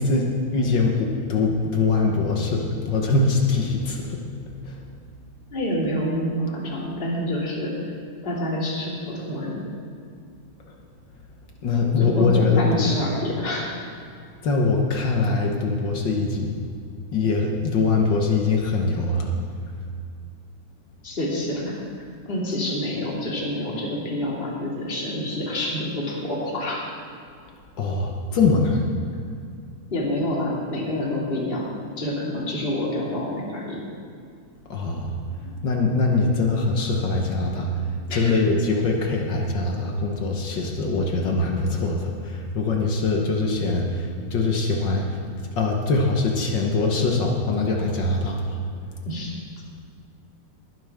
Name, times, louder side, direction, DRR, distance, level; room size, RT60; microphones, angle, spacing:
voice 1, 0.0-4.2 4.6-4.8 11.6-12.9 14.4-16.5 17.1-19.3 27.8-28.8 34.7-35.1 35.6-37.8 38.1-45.2 45.6-48.6, left 3 dB, 65° left, 1 dB, 1.1 m, -23 dB
voice 2, 5.5-7.8 8.2-9.7 12.0-13.7 21.0-21.8 22.3-26.9 29.9-31.7 32.0-33.8 35.4-35.5 38.1-38.3 49.1-49.3, left 1 dB, 20° left, -4 dB, 2.3 m, -27 dB
20.5 x 10.5 x 3.6 m, 2.3 s
omnidirectional pair, 3.6 m